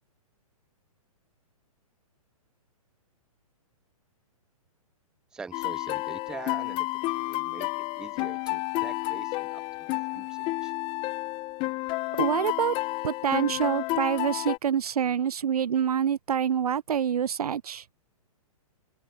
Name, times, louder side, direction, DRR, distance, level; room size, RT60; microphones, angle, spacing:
voice 1, 5.3-6.9 7.1-7.7 8.0-10.7, right 4 dB, 5° right, 0.3 m, -44 dB
sound 1, 5.5-14.6, left 21 dB, 25° left, 0.7 m, -31 dB
voice 2, 12.2-12.8 13.0-17.8, right 8 dB, 90° right, 0.4 m, -26 dB
open air
hypercardioid pair, 130°, 19 cm